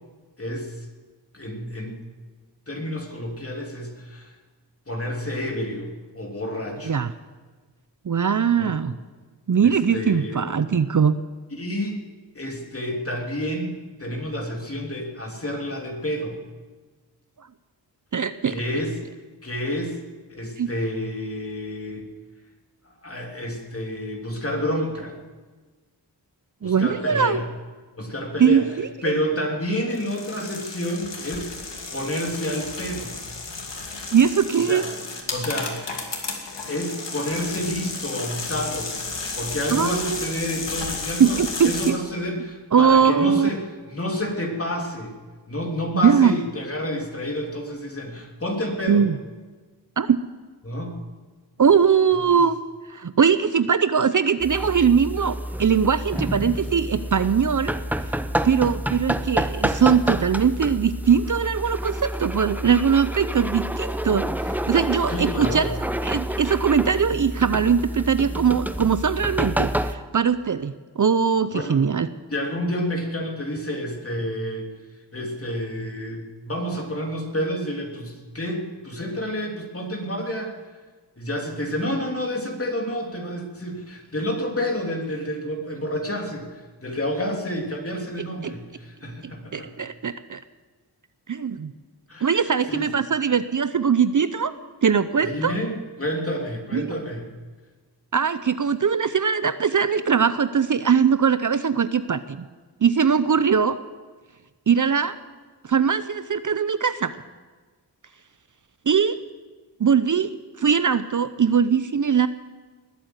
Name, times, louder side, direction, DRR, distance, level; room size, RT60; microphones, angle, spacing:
voice 1, 0.4-0.9 1.3-2.0 2.7-4.3 4.9-5.9 6.1-7.0 8.6-8.7 9.6-10.4 11.5-12.0 12.3-16.4 18.5-18.9 19.4-20.0 20.3-22.1 23.0-25.2 26.6-27.5 28.0-28.7 29.0-33.2 34.6-34.8 35.3-35.8 36.6-39.0 39.3-45.1 45.5-49.0 50.6-50.9 65.1-65.7 71.5-71.8 72.3-74.7 75.1-80.5 81.2-89.7 92.1-92.4 92.7-92.9 95.2-97.3, equal, 35° left, 1 dB, 3.1 m, -29 dB
voice 2, 8.0-8.9 9.5-11.1 18.1-18.6 20.6-20.7 26.6-27.4 28.4-29.1 34.1-34.8 39.7-40.3 41.2-42.0 42.7-43.5 45.9-46.3 48.9-49.1 50.0-50.2 51.6-52.6 52.9-57.8 58.4-65.7 66.0-72.1 88.4-88.5 89.5-90.4 91.3-91.7 92.2-94.6 94.8-95.6 96.7-96.9 98.1-102.5 102.8-103.8 104.7-105.2 105.6-107.2 108.9-109.2 109.8-110.3 110.6-112.3, right 7 dB, 45° right, 12 dB, 0.6 m, -21 dB
sound 1, 29.9-41.9, left 4 dB, 85° left, 2.6 m, -33 dB
sound 2, 54.4-69.9, right 1 dB, 5° right, 0.8 m, -28 dB
20.5 x 8.6 x 8.0 m, 1.4 s
wide cardioid pair, 70°, 42 cm